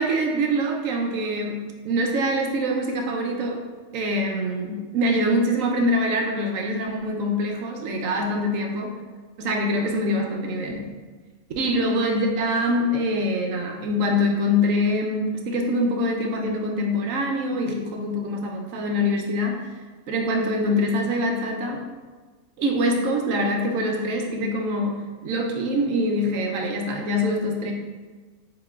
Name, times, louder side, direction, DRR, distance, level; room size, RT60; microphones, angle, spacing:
voice 1, 0.0-3.6 3.9-8.9 9.4-10.9 11.6-19.7 20.1-21.8 22.6-27.7, equal, 80° right, 2 dB, 1.0 m, -24 dB
6.7 x 3.0 x 2.4 m, 1.3 s
omnidirectional pair, 1.3 m